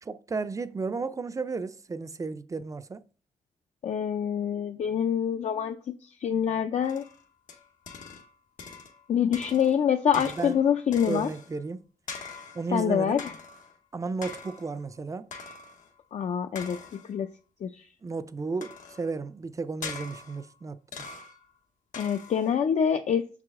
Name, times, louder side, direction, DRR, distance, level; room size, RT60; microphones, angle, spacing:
voice 1, 0.0-3.0 10.2-10.6 11.0-11.8 12.5-13.2 13.9-15.3 18.0-21.0, right 4 dB, 25° right, 0.4 m, -33 dB
voice 2, 3.8-5.8 6.2-7.0 9.1-11.3 12.7-13.3 16.1-16.8 17.1-17.3 17.6-17.7 22.0-23.4, left 8 dB, 60° left, 0.4 m, -25 dB
sound 1, 6.8-8.3 8.6-9.1 9.3-11.6 12.1-12.7 13.2-13.8 14.2-14.8 15.3-15.9 16.6-17.2 18.6-19.1 19.8-20.5 20.9-21.5 21.9-22.6, left 5 dB, 85° left, 1.0 m, -43 dB
6.1 x 4.8 x 3.6 m
wide cardioid pair, 105°, 13 cm